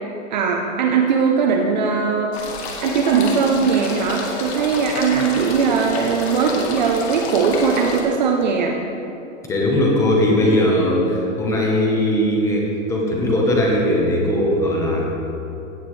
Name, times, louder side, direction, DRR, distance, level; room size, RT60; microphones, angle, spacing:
voice 1, 0.3-2.3 2.8-8.8, right 5 dB, 35° right, 3 dB, 0.6 m, -19 dB
sound 1, 2.3-8.0, left 3 dB, 50° left, 1.9 m, -29 dB
voice 2, 9.4-15.0, left 1 dB, 5° left, -2 dB, 0.9 m, -19 dB
17.0 x 7.9 x 3.2 m, 2.8 s
hypercardioid pair, 165°, 40 cm